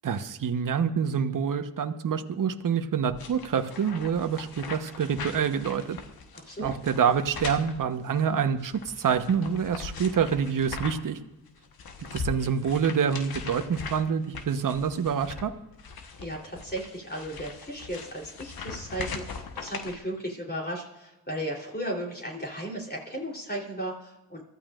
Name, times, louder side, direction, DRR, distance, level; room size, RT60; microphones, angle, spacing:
voice 1, 0.0-6.0 6.6-11.2 12.0-15.5, right 7 dB, 55° right, 8 dB, 1.2 m, -27 dB
sound 1, 3.1-11.2 11.5-20.0, left 5 dB, 65° left, 1.4 m, -40 dB
voice 2, 6.3-6.7 16.2-24.4, right 1 dB, 25° left, -1 dB, 3.7 m, -35 dB
24.0 x 13.0 x 2.5 m, 0.99 s
supercardioid pair, 45°, 39 cm